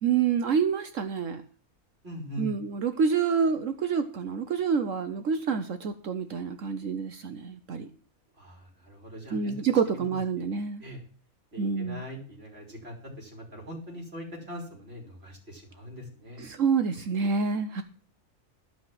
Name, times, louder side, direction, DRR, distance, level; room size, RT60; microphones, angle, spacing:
voice 1, 0.0-1.4 2.4-7.9 9.3-10.8 11.6-12.0 16.4-17.8, right 6 dB, 65° right, 9 dB, 1.2 m, -27 dB
voice 2, 2.0-2.5 8.4-9.5 10.0-10.5 10.8-11.0 11.5-16.4, left 1 dB, 45° right, -1 dB, 3.7 m, -42 dB
13.5 x 5.8 x 7.5 m, 0.43 s
omnidirectional pair, 1.5 m